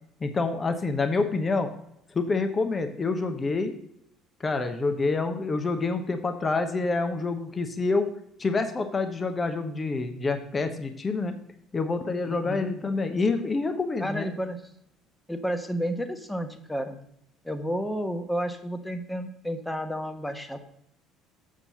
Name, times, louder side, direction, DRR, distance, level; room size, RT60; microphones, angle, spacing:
voice 1, 0.2-1.7 2.1-3.7 4.4-8.1 8.4-11.4 11.7-14.3, left 3 dB, 25° left, 7 dB, 1.0 m, -27 dB
voice 2, 12.3-12.7 14.0-14.6 15.3-17.0 17.4-20.6, equal, 5° left, 7 dB, 1.1 m, -31 dB
7.4 x 7.0 x 4.1 m, 0.76 s
figure-of-eight pair, 55°, 0 cm